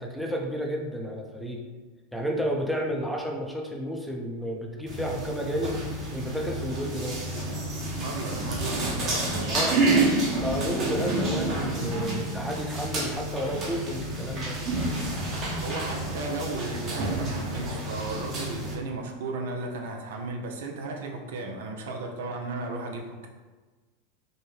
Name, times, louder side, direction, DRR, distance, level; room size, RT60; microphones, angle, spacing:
voice 1, 0.0-1.6 2.1-5.8 6.1-7.2 9.5-9.8 10.4-14.6, equal, ahead, 0 dB, 0.6 m, -31 dB
sound 1, 4.9-18.7, right 2 dB, 40° right, 1.1 m, -29 dB
voice 2, 8.0-9.6 15.6-23.3, right 3 dB, 75° right, 3 dB, 0.5 m, -35 dB
4.3 x 2.1 x 3.2 m, 1.3 s
hypercardioid pair, 95°, 0 cm